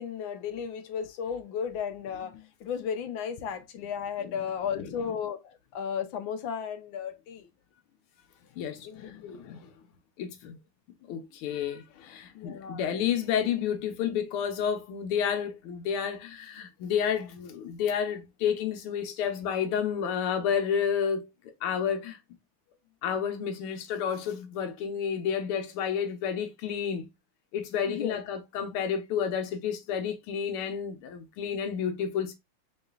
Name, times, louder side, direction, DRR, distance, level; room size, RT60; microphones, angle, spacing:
voice 1, 0.0-7.5 8.8-9.6 12.3-12.9 27.9-28.2 28.7-28.8, left 7 dB, 75° left, 1.3 m, -35 dB
voice 2, 8.6-9.1 9.4-9.7 10.2-10.6 11.1-21.3 21.6-22.2 23.0-27.1 27.5-32.3, left 8 dB, 90° left, 1.6 m, -30 dB
3.9 x 3.7 x 2.3 m
omnidirectional pair, 2.3 m